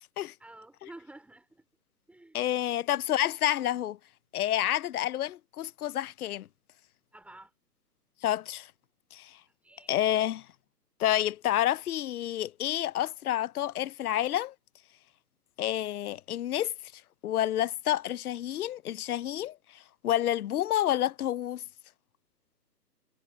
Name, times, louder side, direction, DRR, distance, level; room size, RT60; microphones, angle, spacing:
voice 1, 0.4-1.7 2.1-2.5 2.8-2.9 7.1-7.5 9.6-9.9, right 2 dB, 5° right, 4.9 m, -50 dB
voice 2, 2.3-4.0 4.3-6.5 8.2-8.7 9.1-9.3 9.9-10.5 11.0-14.5 15.6-16.7 17.2-21.6, left 12 dB, 60° left, 0.7 m, -29 dB
hypercardioid pair, 145°, 49 cm